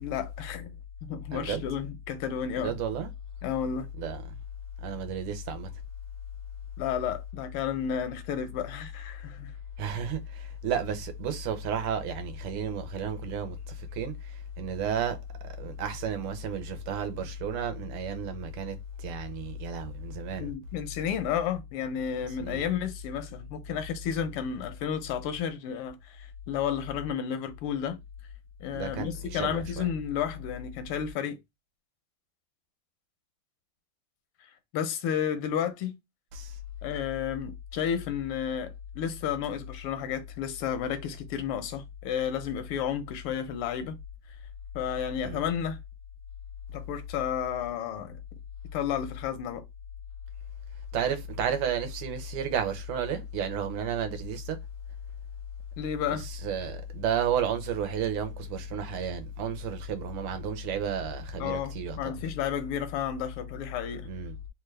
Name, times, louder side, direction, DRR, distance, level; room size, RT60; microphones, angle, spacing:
voice 1, 0.0-0.7 1.0-2.7 3.4-3.9 6.8-9.5 20.4-28.0 28.6-31.4 34.7-36.0 36.8-44.0 44.7-45.8 46.7-48.1 48.7-49.6 55.8-56.3 61.4-64.1, left 8 dB, 80° left, 1.5 m, -32 dB
voice 2, 1.3-1.6 2.6-3.1 4.0-4.2 4.8-5.7 9.8-15.2 15.4-20.5 22.4-22.6 28.7-29.8 36.3-36.5 45.2-45.4 50.9-54.6 56.2-62.0 64.0-64.3, right 6 dB, 90° right, 1.7 m, -32 dB
4.0 x 2.3 x 3.1 m
omnidirectional pair, 2.4 m